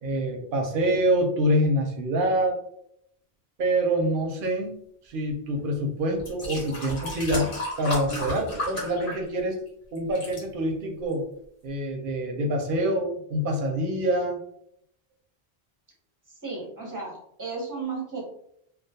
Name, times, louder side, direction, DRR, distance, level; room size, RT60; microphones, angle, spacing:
voice 1, 0.0-2.6 3.6-4.7 5.0-9.6 9.9-11.3 11.6-14.4, right 1 dB, 65° right, 2 dB, 0.7 m, -26 dB
sound 1, 5.6-5.7 6.2-9.7 10.0-10.4 11.1-11.2, left 1 dB, 60° left, 1.1 m, -33 dB
voice 2, 16.4-18.2, right 4 dB, 20° right, -3 dB, 0.7 m, -34 dB
2.3 x 2.2 x 2.7 m, 0.71 s
omnidirectional pair, 1.0 m